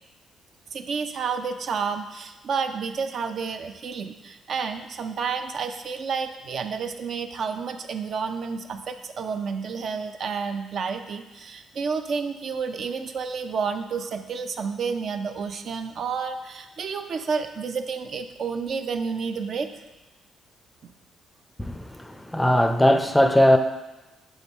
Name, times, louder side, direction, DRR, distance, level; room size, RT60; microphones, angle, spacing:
voice 1, 0.7-19.7, right 5 dB, 60° right, 7 dB, 0.4 m, -30 dB
voice 2, 21.6-23.6, left 1 dB, 10° left, 6 dB, 0.4 m, -19 dB
7.1 x 3.5 x 4.2 m, 1.1 s
cardioid pair, 90°, 0 cm